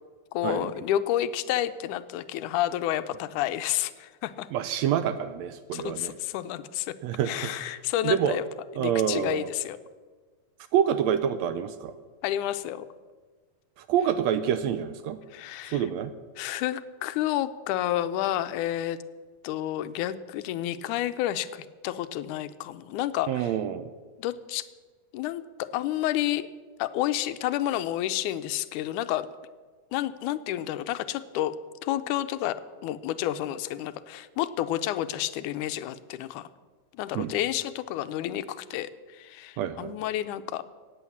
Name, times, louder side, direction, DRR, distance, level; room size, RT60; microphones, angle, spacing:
voice 1, 0.3-4.5 5.7-7.0 7.3-8.4 8.8-9.8 12.2-12.9 15.3-15.8 16.4-19.0 19.4-23.5 24.2-24.7 25.1-26.5 26.8-29.3 29.9-31.6 31.8-36.5 36.9-40.6, left 13 dB, 85° left, 12 dB, 2.1 m, -30 dB
voice 2, 4.5-6.1 7.0-7.8 8.0-8.4 8.8-9.5 10.7-11.9 13.8-15.2 15.7-16.1 23.3-23.9 37.1-37.3 39.6-39.9, right 9 dB, 75° right, 12 dB, 1.7 m, -27 dB
16.5 x 9.1 x 7.2 m, 1.4 s
omnidirectional pair, 3.5 m